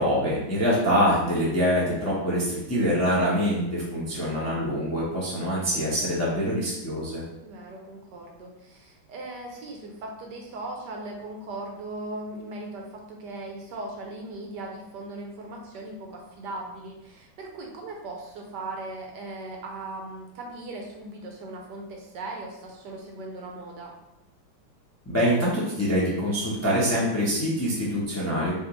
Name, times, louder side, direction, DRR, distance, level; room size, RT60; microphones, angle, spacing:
voice 1, 0.0-7.2 25.1-28.5, equal, 15° left, -7 dB, 0.5 m, -25 dB
voice 2, 7.4-23.9, right 2 dB, 70° right, 1 dB, 1.2 m, -38 dB
5.6 x 2.7 x 3.1 m, 0.91 s
omnidirectional pair, 2.1 m